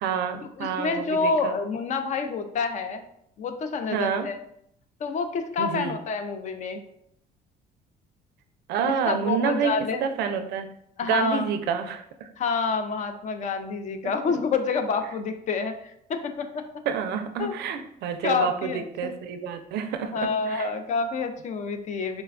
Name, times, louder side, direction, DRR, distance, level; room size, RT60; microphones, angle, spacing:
voice 1, 0.0-1.6 3.9-4.3 5.6-6.0 8.7-9.7 10.0-10.7 11.0-12.0 16.9-20.7, right 7 dB, 75° right, 7 dB, 0.4 m, -28 dB
voice 2, 0.6-3.0 3.4-4.4 5.0-6.8 9.1-10.0 11.0-11.4 12.4-16.6 17.4-17.5 18.2-19.1 20.1-22.2, left 4 dB, 45° left, 7 dB, 0.4 m, -28 dB
4.0 x 2.2 x 2.4 m, 0.73 s
cardioid pair, 110°, 17 cm